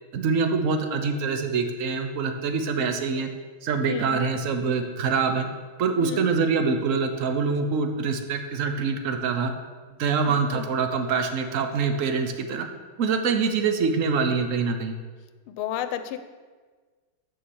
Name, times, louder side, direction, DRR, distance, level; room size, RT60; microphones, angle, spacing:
voice 1, 0.1-3.3 3.6-5.5 5.8-9.5 10.0-12.7 13.0-15.0, right 5 dB, 55° right, 6 dB, 0.9 m, -25 dB
voice 2, 3.8-4.3 5.9-6.2 10.3-10.7 15.5-16.2, left 10 dB, 90° left, 10 dB, 1.5 m, -33 dB
7.8 x 7.0 x 7.1 m, 1.5 s
omnidirectional pair, 2.3 m